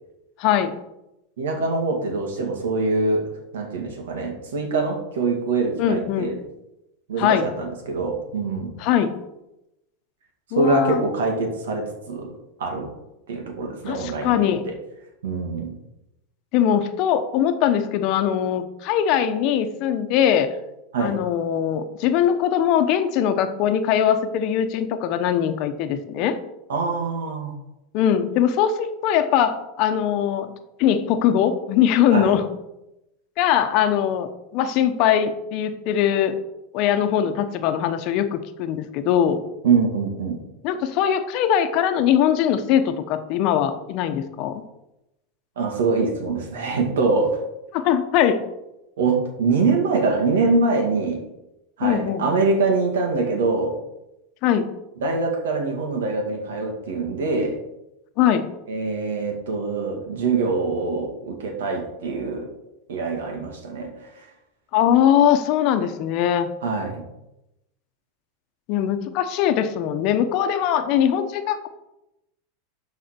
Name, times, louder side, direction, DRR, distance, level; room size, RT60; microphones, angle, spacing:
voice 1, 0.4-0.8 5.8-6.3 7.2-7.5 8.8-9.1 10.5-11.0 13.9-14.6 16.5-20.5 21.0-26.4 27.9-28.7 29.0-30.5 30.8-32.5 33.4-36.3 36.7-39.4 40.6-44.6 47.7-48.4 51.8-52.2 54.4-54.7 58.2-58.5 64.7-66.5 68.7-71.7, left 9 dB, 55° left, 9 dB, 0.9 m, -21 dB
voice 2, 1.4-6.4 7.1-8.8 10.5-12.9 13.3-14.8 15.2-15.8 20.9-21.2 26.7-27.5 32.1-32.4 39.6-40.4 45.6-47.4 49.0-51.3 51.8-53.8 55.0-57.6 58.7-62.5 62.9-64.3 66.6-67.0, right 3 dB, 85° right, 3 dB, 2.1 m, -24 dB
12.0 x 4.2 x 4.4 m, 0.90 s
supercardioid pair, 120°, 0 cm